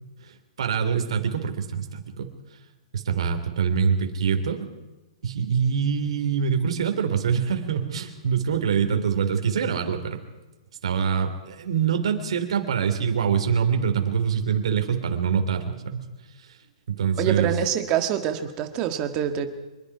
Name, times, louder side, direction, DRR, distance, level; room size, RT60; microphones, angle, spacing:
voice 1, 0.3-2.3 2.9-4.7 5.2-10.2 10.8-16.1 16.9-17.5, right 7 dB, 65° right, 6 dB, 3.5 m, -25 dB
voice 2, 17.2-19.5, right 10 dB, 20° right, 7 dB, 1.7 m, -25 dB
25.5 x 21.5 x 5.0 m, 1.1 s
hypercardioid pair, 170°, 3 cm